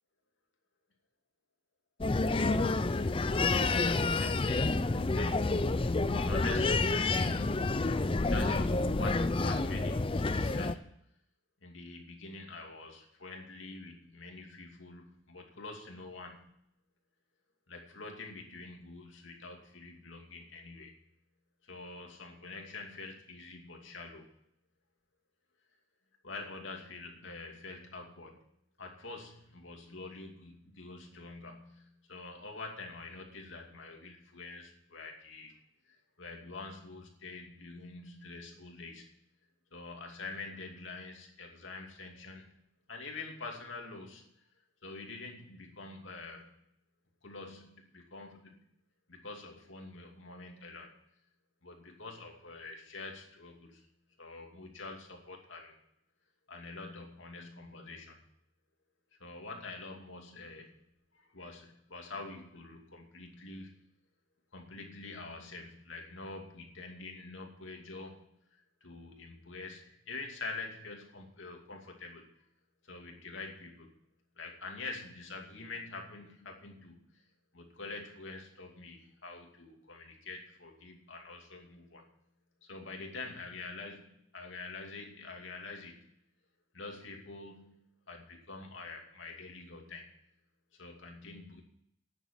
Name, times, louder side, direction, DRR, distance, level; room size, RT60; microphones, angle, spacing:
sound 1, 2.0-10.7, left 3 dB, 25° left, 0.5 m, -29 dB
voice 1, 2.9-5.6 6.1-7.9 8.3-10.9 11.6-16.5 17.7-20.9 21.7-24.3 26.2-28.4 28.8-35.5 35.9-39.1 39.7-42.5 42.9-44.3 44.8-46.5 47.2-48.6 49.1-50.9 51.6-53.8 54.2-55.8 56.5-58.2 59.2-60.7 61.1-63.8 64.5-68.2 68.5-72.3 72.9-73.9 74.4-77.0 77.5-82.1 82.6-86.1 86.7-87.8 88.1-90.1 90.8-91.6, left 3 dB, 80° left, 1 dB, 2.6 m, -46 dB
10.0 x 7.2 x 8.7 m, 0.73 s
head